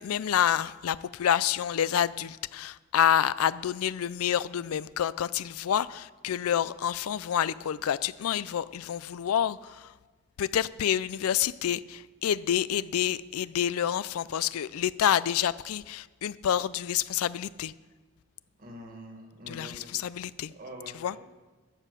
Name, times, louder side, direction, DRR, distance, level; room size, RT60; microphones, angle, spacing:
voice 1, 0.0-9.9 10.4-17.7 19.5-20.5 20.9-21.2, left 9 dB, 90° left, 0.4 m, -28 dB
voice 2, 18.6-19.9 20.5-21.2, equal, 45° right, 2.0 m, -45 dB
12.0 x 7.6 x 6.8 m
head